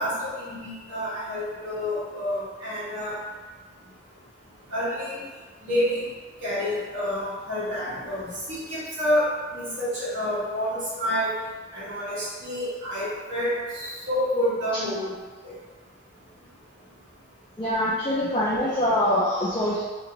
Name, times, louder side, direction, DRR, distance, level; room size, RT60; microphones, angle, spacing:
voice 1, 0.0-3.2 4.7-5.2 5.6-6.1 6.4-11.3 11.7-15.1 15.4-15.5, equal, 60° right, -10 dB, 1.4 m, -28 dB
voice 2, 17.6-19.8, left 1 dB, 25° left, -8 dB, 0.3 m, -24 dB
2.9 x 2.2 x 3.8 m, 1.4 s
head